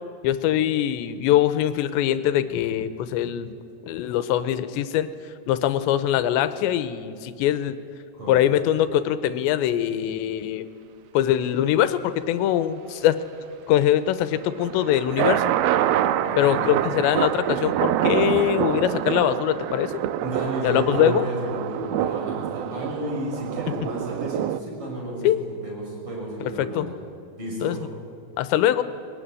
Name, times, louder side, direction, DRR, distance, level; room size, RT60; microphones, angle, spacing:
voice 1, 0.2-3.5 3.8-5.1 5.5-7.8 8.3-10.7 11.1-13.2 13.7-15.5 16.4-20.0 20.6-21.2 25.2-25.4 26.4-26.9 27.6-27.8 28.4-28.8, left 11 dB, 85° left, 12 dB, 3.1 m, -22 dB
voice 2, 8.1-8.5 16.2-17.0 20.2-25.3 25.6-26.9 27.4-27.8, right 1 dB, 30° right, -2 dB, 7.4 m, -32 dB
sound 1, 14.4-24.6, right 12 dB, 85° right, 2.2 m, -26 dB
22.5 x 19.0 x 9.8 m, 2.4 s
omnidirectional pair, 5.1 m